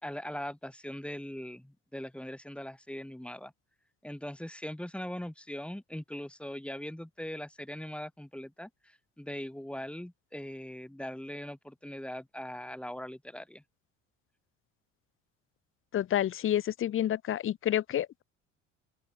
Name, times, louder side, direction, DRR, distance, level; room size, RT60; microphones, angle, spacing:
voice 1, 0.0-3.5 4.0-13.6, left 1 dB, 5° left, 4.3 m, -41 dB
voice 2, 15.9-18.2, left 11 dB, 35° left, 0.7 m, -29 dB
open air
hypercardioid pair, 65°, 36 cm